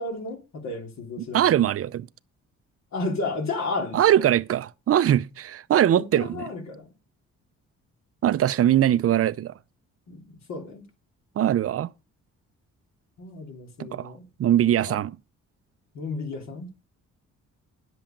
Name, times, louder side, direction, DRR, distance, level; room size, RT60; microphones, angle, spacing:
voice 1, 0.0-1.5 2.9-4.2 5.9-6.9 10.1-10.2 10.5-10.9 13.2-14.3 14.8-15.0 15.9-16.7, left 3 dB, 65° left, 3.1 m, -33 dB
voice 2, 1.2-2.1 3.9-6.5 8.2-9.5 11.4-11.9 13.8-14.1 14.4-15.1, right 11 dB, 50° right, 0.6 m, -21 dB
9.9 x 7.6 x 5.2 m
cardioid pair, 90°, 30 cm